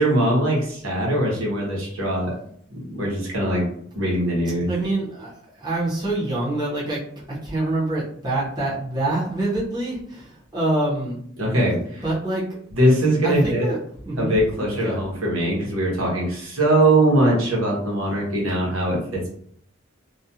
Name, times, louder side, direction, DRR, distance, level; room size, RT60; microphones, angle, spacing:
voice 1, 0.0-2.3 2.7-3.6 4.0-4.7 11.4-12.0 12.7-13.7 14.2-19.3, right 1 dB, 80° right, -3 dB, 1.0 m, -21 dB
voice 2, 4.7-5.3 5.6-7.0 7.3-11.2 12.0-12.4 13.2-13.8 14.0-14.3 14.7-15.0, right 2 dB, 20° right, -7 dB, 0.8 m, -25 dB
2.4 x 2.3 x 2.7 m, 0.64 s
head